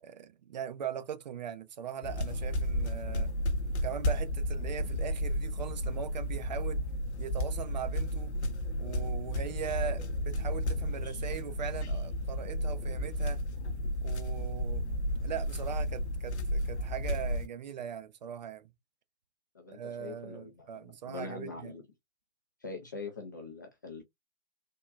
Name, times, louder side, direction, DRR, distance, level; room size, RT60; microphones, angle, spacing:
voice 1, 0.0-3.3 3.8-6.8 7.2-8.3 8.8-13.4 14.0-18.7 19.7-21.7, right 8 dB, 40° right, 0.6 m, -40 dB
sound 1, 2.0-17.5, equal, 80° left, 0.6 m, -33 dB
voice 2, 19.5-21.8 22.6-24.0, left 4 dB, 20° left, 0.3 m, -43 dB
3.6 x 2.1 x 2.4 m
figure-of-eight pair, 130°, 33 cm